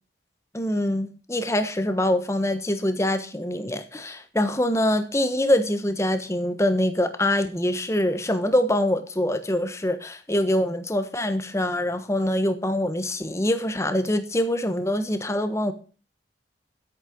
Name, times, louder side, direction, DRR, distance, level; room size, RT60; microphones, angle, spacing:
voice 1, 0.5-15.7, left 1 dB, 15° left, 1.2 m, -24 dB
9.6 x 8.8 x 5.3 m
head